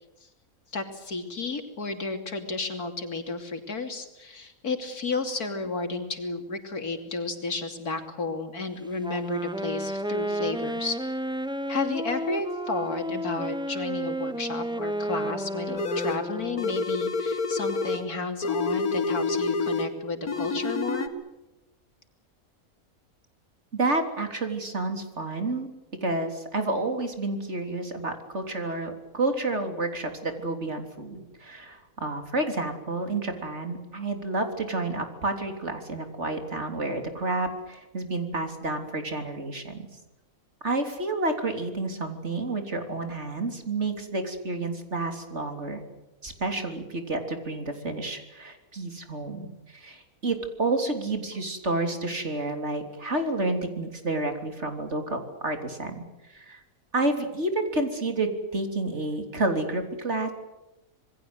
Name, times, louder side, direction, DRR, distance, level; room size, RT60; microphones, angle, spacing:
voice 1, 0.7-11.0 11.7-21.1, left 3 dB, 90° left, 6 dB, 3.4 m, -32 dB
Wind instrument woodwind instrument, 9.0-16.9, right 1 dB, 5° right, 0.9 m, -32 dB
sound 1, 15.8-16.2 16.6-18.1 18.4-19.9 20.3-21.1, left 3 dB, 70° left, 2.4 m, -28 dB
voice 2, 23.7-25.7 26.0-39.9 40.6-45.8 46.2-56.0 56.3-56.6 56.9-60.3, right 2 dB, 50° right, 5 dB, 3.8 m, -30 dB
27.0 x 21.5 x 8.1 m, 1.0 s
omnidirectional pair, 1.6 m